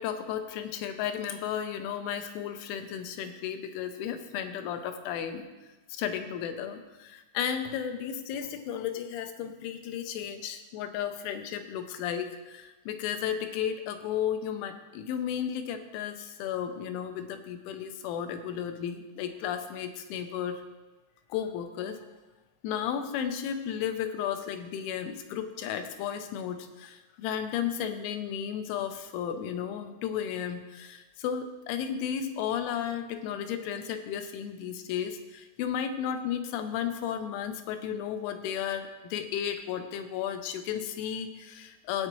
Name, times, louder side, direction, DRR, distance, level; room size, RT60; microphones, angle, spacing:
voice 1, 0.0-5.5 5.9-20.6 21.3-22.0 22.6-42.1, left 9 dB, 85° left, 7 dB, 3.1 m, -34 dB
14.5 x 8.7 x 3.1 m, 1.2 s
omnidirectional pair, 5.5 m